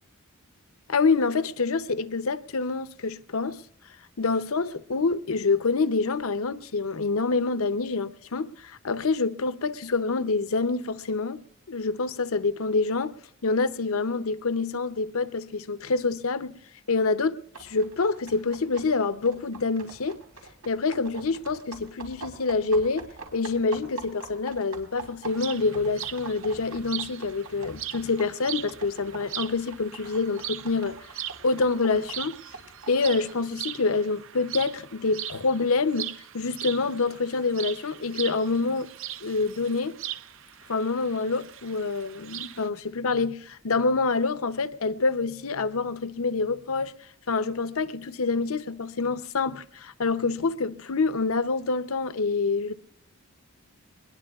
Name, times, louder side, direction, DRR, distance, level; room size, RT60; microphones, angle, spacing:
voice 1, 0.9-3.6 4.2-11.4 11.7-13.1 13.4-16.5 16.9-20.2 20.7-31.0 31.4-32.3 32.9-38.9 39.2-40.0 40.7-46.9 47.3-52.7, left 4 dB, 70° left, 0.7 m, -26 dB
sound 1, 17.5-33.4, right 4 dB, 90° right, 4.4 m, -45 dB
sound 2, 25.3-42.7, right 11 dB, 60° right, 0.6 m, -40 dB
22.0 x 21.5 x 2.4 m
head